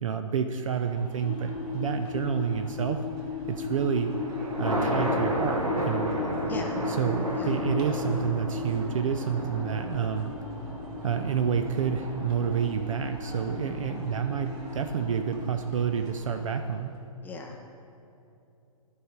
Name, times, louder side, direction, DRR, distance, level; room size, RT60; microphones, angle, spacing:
voice 1, 0.0-3.0 3.5-4.1 4.6-6.3 6.9-10.3 11.0-17.0, right 7 dB, 65° right, 7 dB, 0.5 m, -29 dB
sound 1, 0.7-17.0, right 1 dB, 30° right, 1.6 m, -47 dB
sound 2, 1.2-16.2, left 4 dB, 70° left, 0.5 m, -37 dB
Thunder, 3.8-15.1, right 1 dB, 90° right, 1.8 m, -34 dB
voice 2, 17.2-17.6, left 4 dB, 10° left, 2 dB, 0.4 m, -38 dB
11.0 x 4.8 x 5.1 m, 2.8 s
figure-of-eight pair, 130°, 18 cm